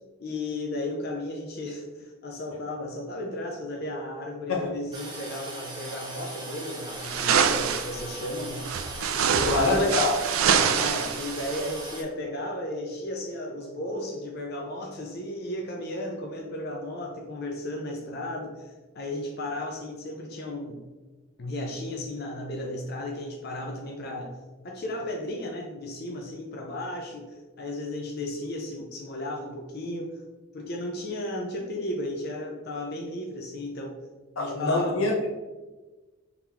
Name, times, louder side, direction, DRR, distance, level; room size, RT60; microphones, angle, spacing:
voice 1, 0.2-8.7 9.3-9.9 10.7-20.8 21.4-24.4 24.6-30.2 30.5-34.0 34.4-35.0, left 1 dB, 50° left, 0 dB, 0.5 m, -34 dB
Toilet flush, 4.9-12.0, right 2 dB, 20° right, 0.7 m, -39 dB
sound 1, 7.0-7.9 8.6-11.7, right 7 dB, 80° right, 0.4 m, -25 dB
voice 2, 9.5-10.2 34.4-35.3, left 2 dB, 90° left, -1 dB, 1.0 m, -24 dB
3.9 x 2.9 x 3.4 m, 1.2 s
head